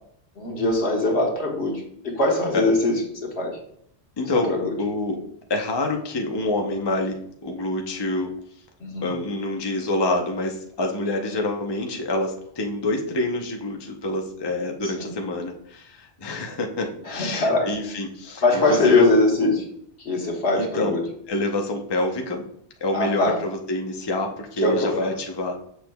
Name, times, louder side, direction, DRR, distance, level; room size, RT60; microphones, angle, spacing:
voice 1, 0.4-3.6 4.5-4.7 8.8-9.1 15.0-15.1 17.1-17.7 18.4-19.6 20.0-21.0 22.9-23.4 24.6-25.1, left 2 dB, 75° left, 0 dB, 1.6 m, -22 dB
voice 2, 4.2-5.2 5.5-8.3 9.0-19.1 20.6-21.0 21.3-22.4 22.8-25.6, left 2 dB, 25° left, 2 dB, 0.7 m, -27 dB
7.0 x 6.1 x 2.3 m, 0.68 s
omnidirectional pair, 1.1 m